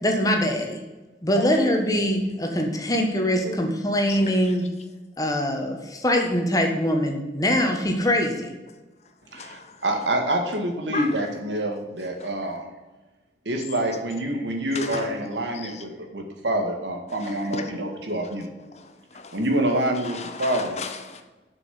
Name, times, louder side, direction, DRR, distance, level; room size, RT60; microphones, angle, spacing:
voice 1, 0.0-0.8 1.2-4.7 5.2-8.5, equal, 20° left, 1.4 m, -23 dB
voice 2, 1.4-1.8 3.4-3.7 4.1-4.7 9.2-9.8 10.9-11.2 12.2-12.3 13.9-14.0 14.7-15.1 15.5-15.8 17.1-17.7 18.7-19.4 19.9-21.2, left 4 dB, 40° left, 1.0 m, -36 dB
voice 3, 9.3-12.7 13.5-18.5 19.3-20.8, right 1 dB, 85° right, 2.0 m, -27 dB
7.6 x 6.3 x 7.8 m
head